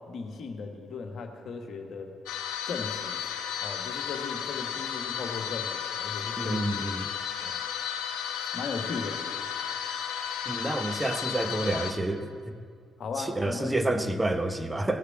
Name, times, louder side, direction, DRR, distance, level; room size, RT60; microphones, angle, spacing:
voice 1, 0.0-2.1 2.7-3.2 3.6-6.6 7.4-7.6 8.5-9.2 13.0-14.2, left 4 dB, 55° left, 4 dB, 1.3 m, -37 dB
sound 1, 2.3-11.9, left 8 dB, 75° left, 0.9 m, -33 dB
voice 2, 6.4-7.1 10.5-12.6 13.2-15.0, right 2 dB, 15° right, 8 dB, 0.9 m, -29 dB
16.0 x 6.6 x 7.7 m, 2.1 s
figure-of-eight pair, 40°, 0 cm